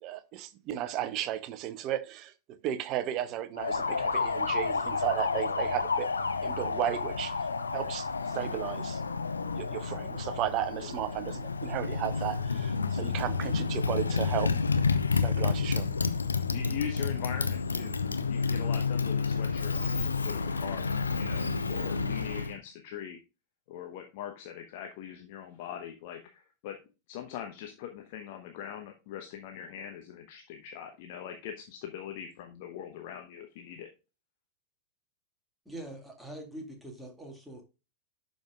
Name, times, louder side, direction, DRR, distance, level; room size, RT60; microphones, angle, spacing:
voice 1, 0.0-6.1 6.4-7.3 7.7-8.1 8.3-9.0 9.5-14.5 15.2-15.9, right 12 dB, 40° right, 0.8 m, -34 dB
Motorcycle, 3.6-22.6, left 4 dB, 75° left, 0.7 m, -30 dB
voice 2, 16.5-17.9 18.3-20.9 21.2-23.2 23.7-26.8 27.1-33.9, left 9 dB, 50° left, 0.9 m, -41 dB
voice 3, 35.7-37.6, right 1 dB, ahead, 2.1 m, -43 dB
11.5 x 5.2 x 2.4 m
figure-of-eight pair, 90°, 0 cm